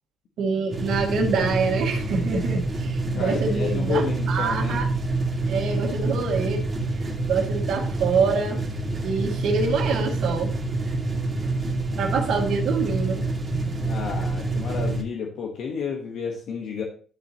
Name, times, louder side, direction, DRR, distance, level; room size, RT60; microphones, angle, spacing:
voice 1, 0.4-4.0 4.3-4.9 5.4-6.7 7.3-8.6 9.0-10.5 10.9-11.0 12.0-13.2 13.5-13.8, right 4 dB, 70° right, 0 dB, 1.8 m, -25 dB
sound 1, 0.7-15.0, right 2 dB, 30° right, 2.0 m, -27 dB
voice 2, 3.1-4.8 13.8-16.8, left 6 dB, 75° left, 0 dB, 1.1 m, -31 dB
11.5 x 4.1 x 2.9 m, 0.42 s
cardioid pair, 90°, 0 cm